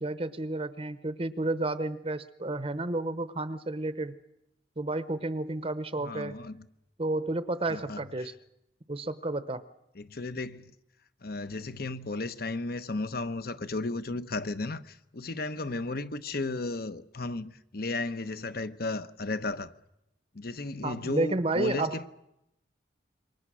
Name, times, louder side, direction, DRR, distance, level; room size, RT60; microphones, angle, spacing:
voice 1, 0.0-4.1 4.8-6.4 7.0-8.3 8.9-9.6 20.8-22.0, right 2 dB, 30° right, 0.8 m, -31 dB
voice 2, 6.0-6.7 7.7-8.3 9.9-10.7 11.2-19.7 20.3-22.1, left 2 dB, 55° left, 1.0 m, -34 dB
27.5 x 24.0 x 6.3 m
head